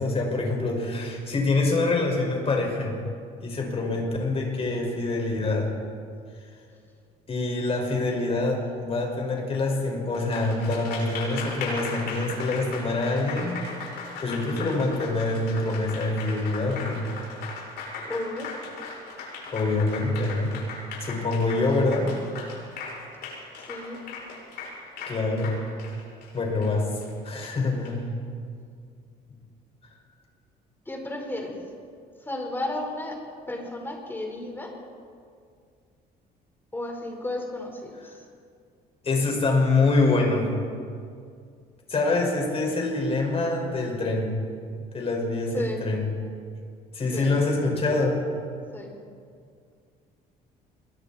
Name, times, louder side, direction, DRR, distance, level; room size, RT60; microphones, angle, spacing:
voice 1, 0.0-3.0 3.4-5.7 7.3-13.6 14.2-17.0 19.5-20.5 21.0-22.1 25.1-25.5 26.3-26.9 27.2-28.1 39.0-40.5 41.9-44.3 44.9-46.1 46.9-48.2, left 2 dB, 35° left, 1 dB, 6.1 m, -25 dB
Applause, 10.1-27.9, left 4 dB, 75° left, 7.6 m, -38 dB
voice 2, 18.0-18.5 23.7-24.0 30.9-31.5 32.3-33.2 33.5-34.7 36.7-38.2 45.5-45.8 47.1-47.3 48.7-48.9, left 1 dB, 10° left, 1 dB, 5.2 m, -33 dB
26.5 x 23.0 x 4.5 m, 2.2 s
cardioid pair, 110°, 17 cm